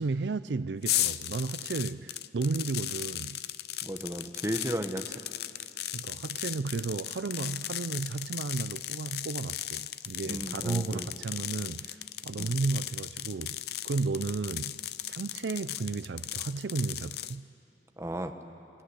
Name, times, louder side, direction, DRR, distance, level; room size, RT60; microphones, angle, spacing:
voice 1, 0.0-3.4 5.9-13.6 13.8-14.8 15.1-17.5, right 3 dB, 75° right, 0.5 m, -33 dB
sound 1, 0.8-17.4, left 13 dB, 60° left, 0.6 m, -36 dB
voice 2, 3.8-5.1 10.3-11.1 12.4-12.6 18.0-18.3, equal, 15° right, 1.1 m, -34 dB
27.0 x 16.5 x 9.8 m
head